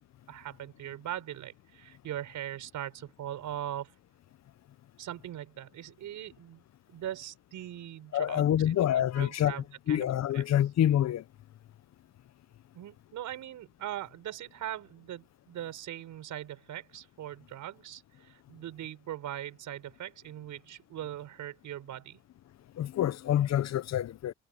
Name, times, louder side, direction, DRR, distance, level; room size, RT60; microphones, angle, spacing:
voice 1, 0.3-3.9 5.0-6.6 6.9-10.1 10.3-10.4 12.7-22.2, right 12 dB, 80° right, 5.7 m, -41 dB
voice 2, 8.1-9.6 9.9-11.2 22.8-24.3, left 11 dB, 60° left, 0.8 m, -27 dB
cardioid pair, 90°, 30 cm